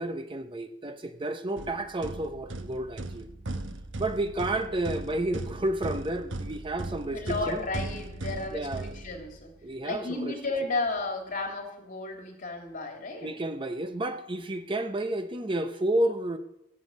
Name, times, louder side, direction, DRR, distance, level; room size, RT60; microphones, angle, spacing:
voice 1, 0.0-3.3 4.0-7.6 8.5-8.9 9.6-10.3 13.2-16.4, right 1 dB, 25° right, 0.7 m, -31 dB
sound 1, 1.6-9.6, right 2 dB, 80° right, 1.1 m, -38 dB
voice 2, 7.1-9.5 9.8-13.3, left 3 dB, 45° left, 2.9 m, -33 dB
16.0 x 6.9 x 8.4 m
head